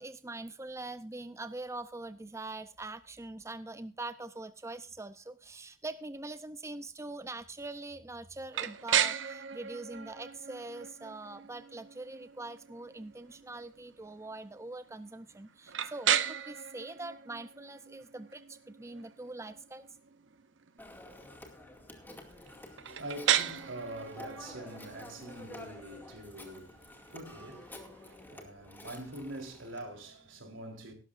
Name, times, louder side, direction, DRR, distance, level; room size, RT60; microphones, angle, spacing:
voice 1, 0.0-19.9, right 2 dB, 15° right, 0.6 m, -43 dB
Impact Vibration, 8.5-28.3, right 9 dB, 70° right, 0.8 m, -36 dB
Telephone, 20.8-29.9, left 1 dB, 10° left, 2.2 m, -50 dB
voice 2, 21.9-30.9, right 1 dB, 90° right, 3.8 m, -45 dB
17.0 x 12.5 x 2.5 m
head